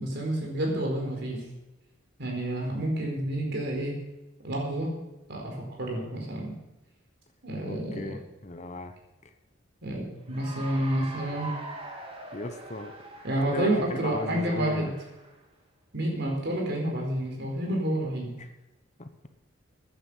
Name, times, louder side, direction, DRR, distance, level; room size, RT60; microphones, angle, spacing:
voice 1, 0.0-1.5 2.2-4.0 4.4-4.9 5.3-6.6 7.4-8.2 9.8-11.5 13.2-14.9 15.9-18.3, right 1 dB, 60° right, 0 dB, 4.3 m, -29 dB
voice 2, 7.6-9.0 12.3-12.9 13.4-14.9 18.4-18.5 19.0-19.1, left 2 dB, 35° left, 8 dB, 1.0 m, -36 dB
Cheering / Applause, 10.2-15.4, right 2 dB, 30° right, 2.4 m, -43 dB
15.5 x 10.5 x 5.6 m, 0.99 s
head